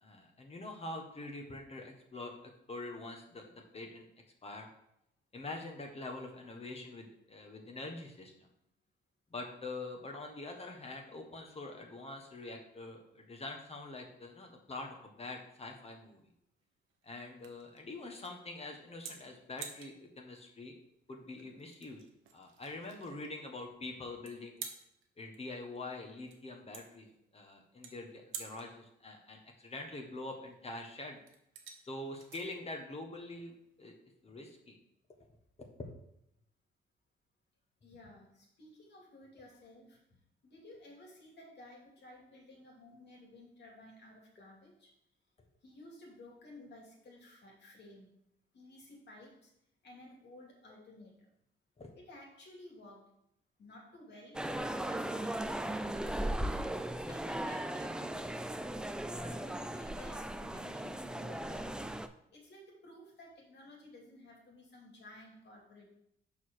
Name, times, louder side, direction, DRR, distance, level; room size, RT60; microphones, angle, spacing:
voice 1, 0.0-2.3 2.7-4.1 4.4-4.7 5.3-8.5 9.3-16.2 17.0-20.7 21.1-22.0 22.3-24.7 25.2-31.2 31.9-33.9 34.2-34.8 35.8-35.9 51.8-51.9, left 2 dB, 30° left, 2 dB, 1.5 m, -45 dB
sound 1, 15.2-34.0, right 7 dB, 85° right, 1.1 m, -52 dB
voice 2, 37.8-44.9 45.6-48.1 48.5-49.5 49.8-51.3 51.9-53.0 53.6-56.2 57.0-58.3 59.2-61.8 62.3-66.0, left 1 dB, 60° left, -1 dB, 2.7 m, -55 dB
sound 2, 54.3-62.1, right 1 dB, 5° right, 0.4 m, -37 dB
5.5 x 4.9 x 6.4 m, 0.77 s
cardioid pair, 90°, 20 cm